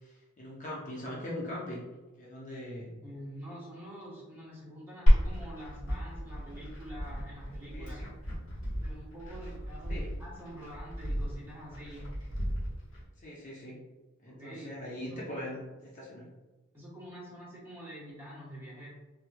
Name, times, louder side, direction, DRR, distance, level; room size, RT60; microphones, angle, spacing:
voice 1, 0.0-1.8 2.2-3.0 7.7-8.0 9.9-10.1 13.2-13.8 14.2-16.3, left 1 dB, 35° left, -4 dB, 0.6 m, -41 dB
voice 2, 3.0-8.0 8.8-12.2 14.3-15.2 16.7-18.9, equal, 10° right, -7 dB, 1.0 m, -46 dB
Glass, 5.1-13.0, equal, 65° left, 1.4 m, -31 dB
3.6 x 2.9 x 2.2 m, 1.2 s
head